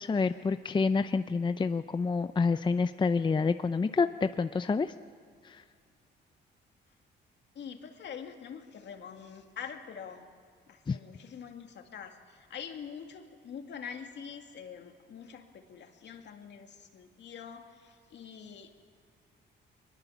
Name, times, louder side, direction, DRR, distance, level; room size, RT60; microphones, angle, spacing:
voice 1, 0.0-4.9 5.4-5.6 10.9-11.0, left 4 dB, 25° left, 11 dB, 0.6 m, -28 dB
voice 2, 7.6-10.3 10.7-18.7, left 7 dB, 65° left, 5 dB, 2.3 m, -45 dB
23.0 x 21.0 x 7.1 m, 2.1 s
cardioid pair, 90°, 20 cm